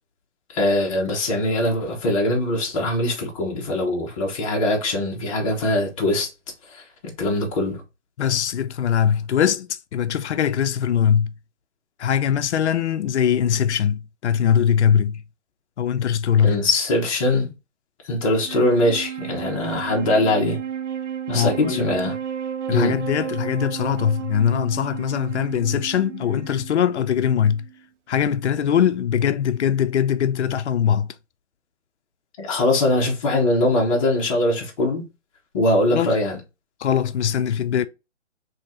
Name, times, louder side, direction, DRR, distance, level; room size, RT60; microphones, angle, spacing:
voice 1, 0.5-6.3 6.7-6.8 7.2-7.8 16.4-17.5 18.0-20.6 21.3-22.2 22.7-22.9 32.4-35.0 35.5-36.4, left 1 dB, 30° left, 0.9 m, -22 dB
voice 2, 8.2-9.7 9.9-11.3 12.0-15.2 15.8-16.6 21.3-21.8 22.7-27.6 28.1-31.1 35.9-36.1 36.8-37.9, left 8 dB, 70° left, 0.5 m, -21 dB
Wind instrument woodwind instrument, 18.3-27.8, right 9 dB, 85° right, 0.5 m, -33 dB
2.9 x 2.8 x 3.6 m
hypercardioid pair, 150°, 35 cm